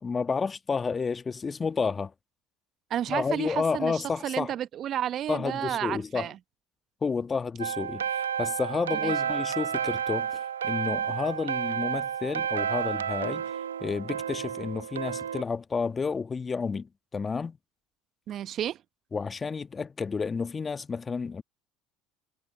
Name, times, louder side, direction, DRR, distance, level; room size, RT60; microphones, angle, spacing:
voice 1, 0.0-2.1 3.1-4.6 5.3-6.3 7.0-13.5 13.8-17.6 19.1-21.4, left 5 dB, 25° left, 1.4 m, -31 dB
voice 2, 2.9-6.4 9.0-9.1 18.3-18.8, right 11 dB, 50° right, 1.0 m, -31 dB
sound 1, 7.6-15.4, right 8 dB, 90° right, 1.0 m, -31 dB
hypercardioid pair, 70°, 0 cm